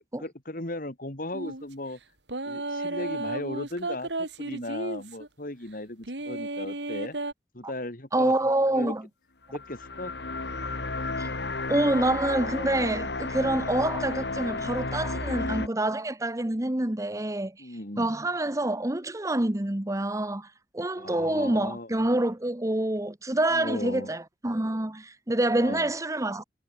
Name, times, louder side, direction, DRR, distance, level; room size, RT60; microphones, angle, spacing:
voice 1, 0.2-2.0 2.4-7.2 7.5-8.3 8.6-8.9 9.5-10.1 17.6-18.1 21.0-21.9 23.5-24.1 25.5-25.9, left 1 dB, 50° left, 2.9 m, -37 dB
sound 1, 1.3-1.6 2.3-5.3 6.0-7.3, right 2 dB, 90° right, 4.2 m, -33 dB
voice 2, 8.1-9.0 11.2-11.3 11.7-17.7 18.0-20.5 20.7-26.4, right 1 dB, 20° right, 1.0 m, -27 dB
sound 2, 9.5-15.7, left 3 dB, 80° left, 2.4 m, -32 dB
head